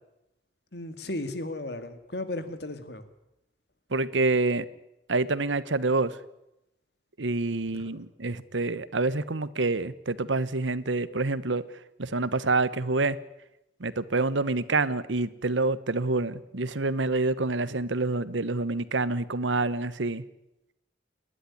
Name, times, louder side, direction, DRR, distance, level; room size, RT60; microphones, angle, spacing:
voice 1, 0.7-3.1 7.7-8.0, left 2 dB, 65° left, 2.2 m, -35 dB
voice 2, 3.9-4.7 5.1-6.2 7.2-11.6 12.0-13.2 13.8-20.2, right 3 dB, 90° right, 1.1 m, -27 dB
29.5 x 11.5 x 9.8 m
head